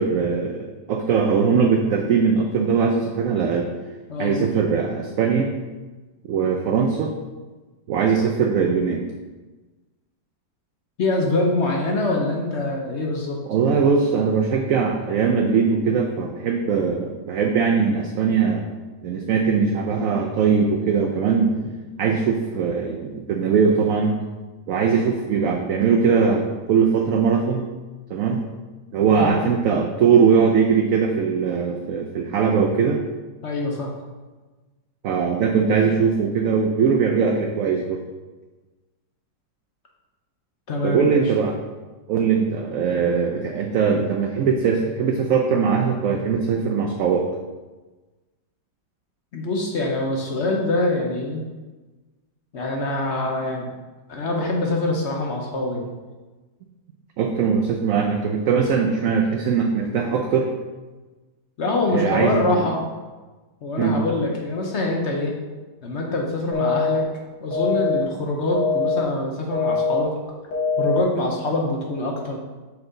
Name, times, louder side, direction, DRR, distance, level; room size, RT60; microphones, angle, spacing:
voice 1, 0.0-3.7 4.2-5.5 6.2-7.1 7.9-9.0 13.5-18.7 19.0-21.5 22.0-24.2 24.7-27.7 28.1-28.4 28.9-33.0 35.0-38.0 40.8-41.6 42.1-47.3 57.2-60.5 61.9-62.6 63.8-64.0, right 6 dB, 70° right, 2 dB, 0.8 m, -20 dB
voice 2, 4.1-4.5 11.0-13.4 29.1-29.3 33.4-33.9 40.7-41.2 49.3-51.4 52.5-53.7 54.1-55.9 61.6-62.8 63.6-65.3 65.8-67.0 67.4-70.1 70.8-72.4, left 2 dB, 55° left, 0 dB, 0.8 m, -24 dB
sound 1, 66.5-67.0 67.5-68.0 68.5-69.0 69.5-70.0 70.5-71.0, left 4 dB, 75° left, 1.9 m, -22 dB
5.6 x 4.4 x 3.8 m, 1.2 s
omnidirectional pair, 1.8 m